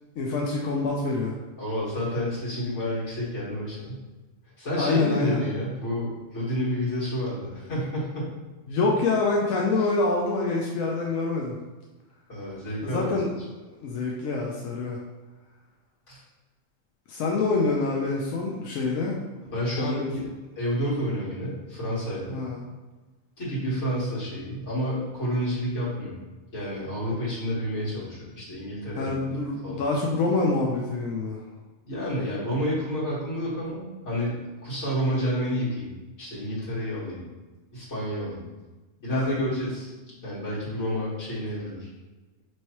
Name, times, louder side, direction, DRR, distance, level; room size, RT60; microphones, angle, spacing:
voice 1, 0.2-1.3 4.8-5.4 8.7-11.6 12.8-13.3 13.8-15.0 17.1-19.2 19.8-20.1 22.3-22.6 29.0-31.4 39.1-39.4, left 3 dB, 90° left, -2 dB, 1.0 m, -26 dB
voice 2, 1.6-4.0 4.6-8.3 9.8-9.9 12.3-13.1 16.1-16.2 19.4-20.2 20.6-22.4 23.4-26.2 26.5-29.2 29.6-29.8 31.8-34.4 34.6-37.3 37.7-38.5 39.0-39.9 40.2-41.9, equal, 60° left, -8 dB, 1.9 m, -30 dB
5.3 x 3.1 x 2.9 m, 1.2 s
omnidirectional pair, 1.4 m